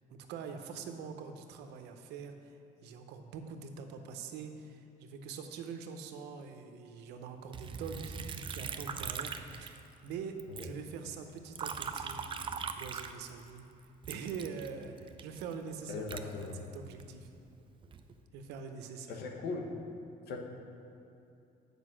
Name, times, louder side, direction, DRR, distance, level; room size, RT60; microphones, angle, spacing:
voice 1, 0.1-2.3 2.8-12.2 12.8-13.7 14.1-17.3 18.3-19.2, right 5 dB, 85° right, 6 dB, 0.8 m, -44 dB
Liquid, 7.5-10.1 10.4-13.6 14.0-17.1 17.6-18.2, right 5 dB, 30° right, 0.4 m, -41 dB
voice 2, 15.9-16.6 19.1-19.7 20.3-20.4, left 4 dB, 75° left, 2 dB, 1.1 m, -39 dB
8.1 x 5.2 x 6.3 m, 2.8 s
cardioid pair, 110°, 17 cm